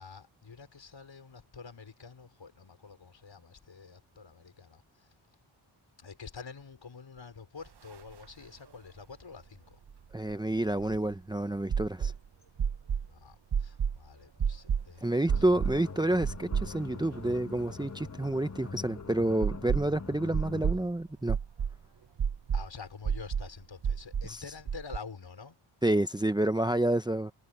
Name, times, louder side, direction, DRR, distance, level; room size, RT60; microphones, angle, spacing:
voice 1, 0.0-5.1 6.0-9.8 13.1-15.4 22.5-25.6, left 5 dB, 60° left, 4.9 m, -48 dB
sound 1, 7.9-8.0 8.2-8.3 9.9-11.1 11.7-12.2 12.6-13.1 13.5-14.0 14.4-14.8 15.3-15.8 16.2-17.0 17.3-17.4 19.4-20.0 20.3-20.8 21.3-21.8 22.2-22.7 23.1-23.5 23.8-24.3 24.7-25.0, right 7 dB, 50° right, 1.0 m, -30 dB
voice 2, 10.1-12.1 15.0-21.4 24.3-24.4 25.8-27.3, right 1 dB, 10° right, 0.7 m, -29 dB
sound 2, 15.3-20.9, left 4 dB, 35° left, 2.0 m, -43 dB
wide cardioid pair, 90°, 50 cm